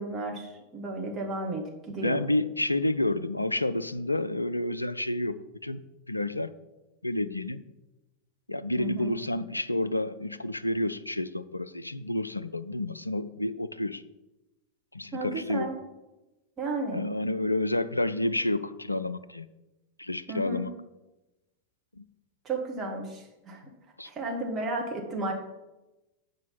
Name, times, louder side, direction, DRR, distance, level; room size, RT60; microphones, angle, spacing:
voice 1, 0.0-2.2 8.8-9.1 15.1-15.7 16.6-17.1 20.3-20.7 22.5-23.6 24.1-25.3, right 2 dB, 25° right, 0 dB, 1.7 m, -33 dB
voice 2, 1.9-5.4 5.6-5.8 6.1-6.5 7.0-7.6 8.5-14.0 14.9-15.7 16.9-19.5 20.0-20.7 22.0-22.1 24.0-24.1, left 1 dB, 85° left, 13 dB, 0.3 m, -29 dB
7.4 x 5.1 x 5.7 m, 1.0 s
figure-of-eight pair, 90°, 0 cm